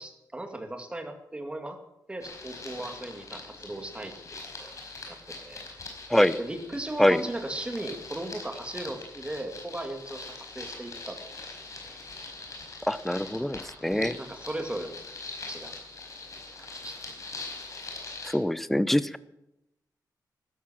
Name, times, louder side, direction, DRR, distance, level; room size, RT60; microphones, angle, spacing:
voice 1, 0.0-1.8 2.1-5.6 6.4-11.6 13.8-15.0 15.5-15.8 16.7-17.0, right 1 dB, 15° right, 5 dB, 2.3 m, -37 dB
sound 1, 2.2-18.3, left 3 dB, 50° left, 4.8 m, -42 dB
voice 2, 12.9-14.1 18.2-19.2, left 1 dB, 5° left, 15 dB, 0.6 m, -24 dB
15.5 x 13.5 x 6.3 m, 0.86 s
wide cardioid pair, 130°, 7 cm